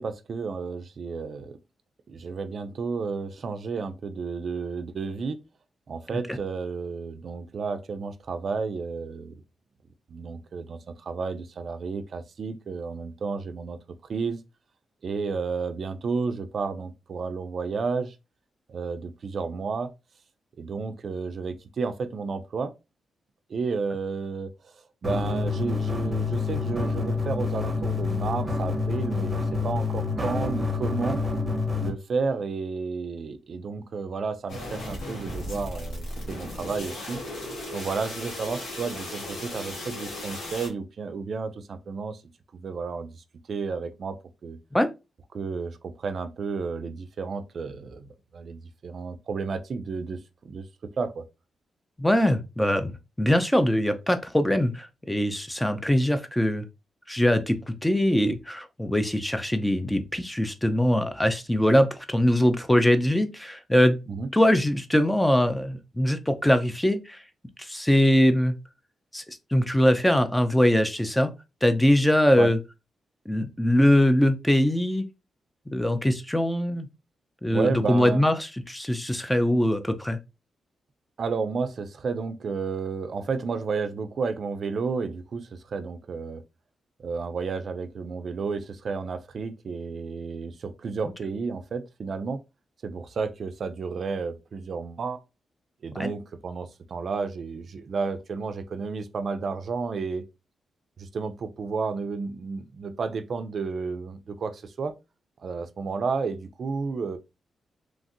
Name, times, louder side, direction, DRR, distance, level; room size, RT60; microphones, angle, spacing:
voice 1, 0.0-1.6 2.1-5.4 5.9-9.4 10.1-13.8 14.1-14.4 15.0-18.2 18.7-19.9 20.6-22.7 23.5-24.7 25.0-31.2 31.8-37.2 37.7-42.2 42.5-43.1 43.5-44.2 44.4-44.6 45.3-50.7 51.0-51.2 64.1-64.3 72.4-72.5 77.5-78.2 81.2-86.4 87.0-92.4 92.8-95.2 95.8-100.2 101.0-104.9 105.4-107.2, right 4 dB, 60° right, 0.4 m, -32 dB
sound 1, 25.0-31.9, left 4 dB, 15° right, 1.0 m, -27 dB
sound 2, 34.5-40.7, left 1 dB, 75° left, 1.4 m, -36 dB
voice 2, 52.0-52.9 53.2-56.6 57.1-64.0 64.3-67.2 67.6-68.5 69.1-71.3 71.6-72.6 73.3-75.0 75.7-76.9 77.4-80.2 96.0-96.1, left 1 dB, 10° left, 0.5 m, -22 dB
3.2 x 2.6 x 2.5 m
cardioid pair, 85°, 0 cm